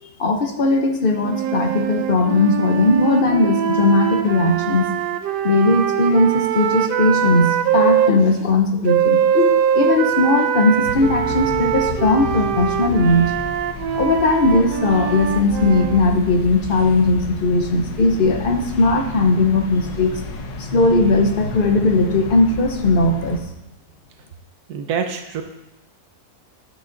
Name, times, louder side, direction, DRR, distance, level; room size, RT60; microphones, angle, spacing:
voice 1, 0.0-4.8 5.4-13.3 13.9-20.2 20.6-23.4, left 2 dB, 45° left, 4 dB, 0.8 m, -18 dB
sound 1, 1.2-8.1 8.9-16.0, right 9 dB, 90° right, 1.2 m, -22 dB
sound 2, 10.8-23.4, left 3 dB, 75° left, 1.5 m, -32 dB
voice 2, 24.7-25.4, right 6 dB, 70° right, 6 dB, 1.3 m, -25 dB
10.5 x 6.0 x 3.9 m, 0.92 s
omnidirectional pair, 1.8 m